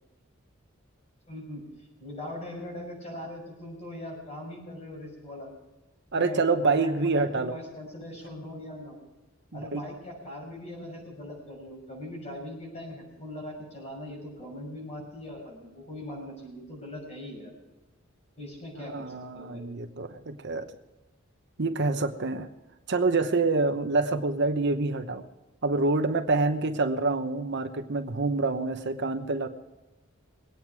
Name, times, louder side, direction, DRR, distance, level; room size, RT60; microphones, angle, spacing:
voice 1, 1.3-1.6 2.0-5.5 6.1-8.9 9.5-17.5 18.4-19.6, left 1 dB, 30° left, -1 dB, 6.3 m, -41 dB
voice 2, 6.1-7.6 9.5-9.8 18.9-20.7 21.6-22.5 22.9-25.2 25.6-29.5, right 3 dB, 60° right, 7 dB, 1.0 m, -27 dB
21.5 x 9.2 x 4.7 m, 1.1 s
head